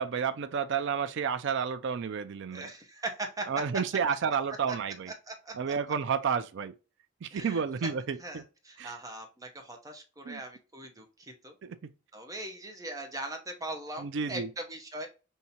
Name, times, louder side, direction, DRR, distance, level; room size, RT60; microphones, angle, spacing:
voice 1, 0.0-2.7 3.5-5.1 5.5-6.7 7.2-8.4 8.8-9.0 10.3-10.4 11.6-11.9 14.0-14.5, right 6 dB, 60° right, 0.4 m, -31 dB
voice 2, 2.5-3.5 4.7-4.8 5.3-5.5 7.3-7.6 8.2-11.5 12.1-15.1, right 2 dB, 15° right, 0.8 m, -40 dB
5.5 x 2.7 x 2.8 m
head